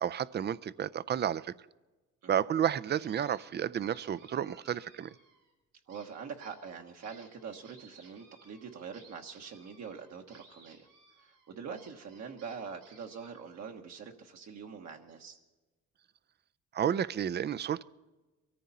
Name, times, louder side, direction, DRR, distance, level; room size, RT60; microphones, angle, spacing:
voice 1, 0.0-1.5 2.3-5.1 16.7-17.8, right 9 dB, 35° right, 19 dB, 0.4 m, -31 dB
sound 1, 2.6-3.5 3.8-5.5 5.9-13.7, right 4 dB, 90° right, 5.0 m, -60 dB
voice 2, 5.9-10.9 11.2-15.4, right 6 dB, 60° right, 2 dB, 1.3 m, -44 dB
23.0 x 14.0 x 4.2 m, 1.2 s
cardioid pair, 90°, 30 cm